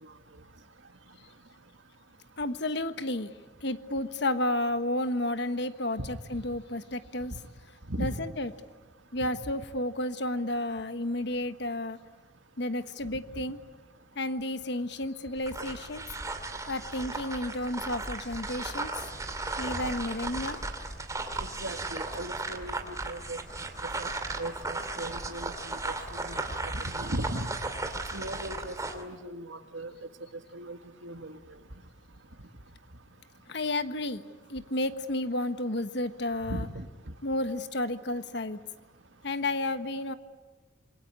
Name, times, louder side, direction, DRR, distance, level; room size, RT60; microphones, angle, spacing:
voice 1, 2.4-3.3 3.6-7.3 8.0-8.5 9.1-12.0 12.6-13.6 14.1-16.0 16.7-18.9 19.6-20.6 33.5-34.2 34.5-36.7 37.2-38.6 39.2-40.1, left 1 dB, 60° left, 10 dB, 1.3 m, -31 dB
sound 1, 15.4-29.0, right 2 dB, 15° right, 2.5 m, -36 dB
voice 2, 21.6-23.4 24.0-24.1 24.4-25.9 26.2-27.5 28.1-29.9 30.5-30.8 31.0-31.4 36.5-36.8, right 1 dB, 85° right, 7 dB, 2.0 m, -37 dB
27.5 x 22.5 x 9.8 m, 1.2 s
head